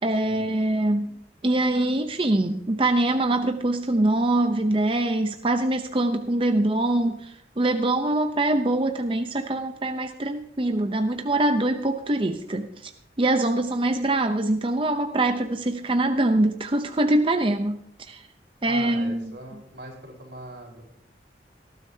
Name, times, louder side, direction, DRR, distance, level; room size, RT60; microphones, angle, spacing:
voice 1, 0.0-12.9 13.2-17.8 18.1-18.2 18.6-19.3, right 2 dB, 30° right, 6 dB, 0.7 m, -24 dB
voice 2, 18.6-20.8, right 1 dB, 85° right, -1 dB, 4.4 m, -41 dB
19.0 x 13.0 x 2.8 m, 0.69 s
head